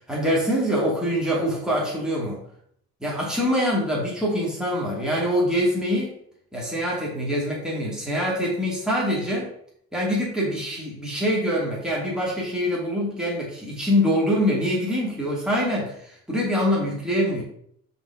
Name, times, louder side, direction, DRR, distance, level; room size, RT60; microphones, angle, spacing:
voice 1, 0.1-2.4 3.0-6.2 6.5-9.5 9.9-17.4, equal, ahead, -5 dB, 2.6 m, -24 dB
5.8 x 4.1 x 5.7 m, 0.69 s
cardioid pair, 90°, 30 cm